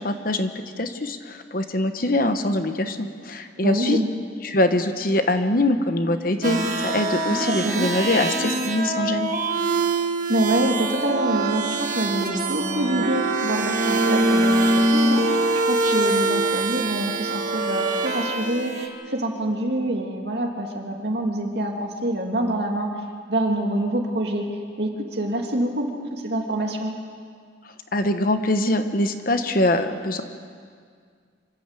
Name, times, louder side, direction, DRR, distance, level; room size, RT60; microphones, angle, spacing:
voice 1, 0.0-4.0 4.4-9.3 27.9-30.2, left 1 dB, 45° left, 8 dB, 1.1 m, -23 dB
voice 2, 3.6-4.1 7.3-8.1 10.3-14.6 14.9-22.9 23.3-24.4 24.8-26.9, right 1 dB, 60° right, 1 dB, 2.6 m, -26 dB
sound 1, 6.4-18.9, right 2 dB, 40° right, 1.7 m, -23 dB
26.0 x 13.0 x 8.3 m, 2.1 s
head